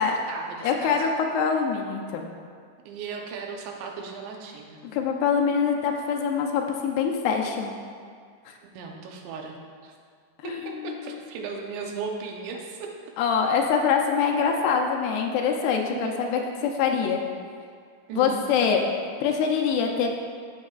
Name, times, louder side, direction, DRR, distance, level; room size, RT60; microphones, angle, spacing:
voice 1, 0.0-1.1 2.9-4.8 8.7-9.6 9.8-9.9 10.4-12.9 15.9-16.2 18.1-18.4, right 5 dB, 85° right, 1 dB, 3.1 m, -36 dB
voice 2, 0.6-2.3 4.8-7.8 8.5-8.6 10.4-11.2 13.2-17.2 18.2-18.9 19.2-20.2, left 6 dB, 80° left, 2 dB, 2.6 m, -24 dB
14.0 x 7.5 x 2.4 m, 2.1 s
omnidirectional pair, 4.9 m